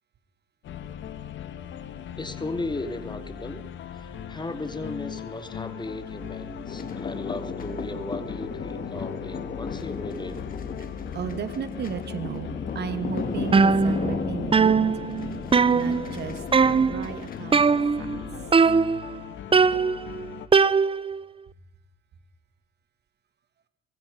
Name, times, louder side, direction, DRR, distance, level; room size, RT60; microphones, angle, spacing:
sound 1, 0.6-20.5, left 8 dB, 70° left, 2.2 m, -39 dB
voice 1, 2.2-3.6 3.9-10.4, left 2 dB, 25° left, 10 dB, 2.6 m, -36 dB
sound 2, 6.7-18.6, left 5 dB, 50° left, 3.3 m, -35 dB
voice 2, 11.1-14.9 15.7-18.1, right 8 dB, 60° right, 10 dB, 2.6 m, -35 dB
sound 3, 13.5-14.2 14.5-16.2 16.5-17.1 17.5-18.2 18.5-19.2 19.5-21.2, right 5 dB, 30° right, 0.8 m, -20 dB
24.5 x 22.5 x 5.5 m, 0.80 s
supercardioid pair, 70°, 19 cm